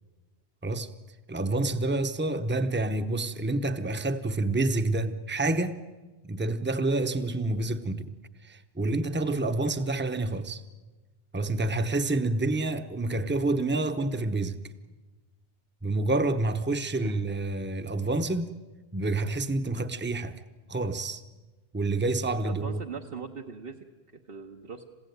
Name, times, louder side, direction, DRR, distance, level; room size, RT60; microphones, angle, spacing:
voice 1, 0.6-0.9 1.3-5.8 6.2-8.1 8.4-10.6 11.3-14.6 15.8-18.5 18.9-20.4 20.7-21.2 21.7-22.8, right 2 dB, 10° right, 0.9 m, -28 dB
voice 2, 22.4-23.8 24.1-24.9, right 5 dB, 65° right, 1.4 m, -40 dB
28.0 x 16.0 x 9.3 m
omnidirectional pair, 1.0 m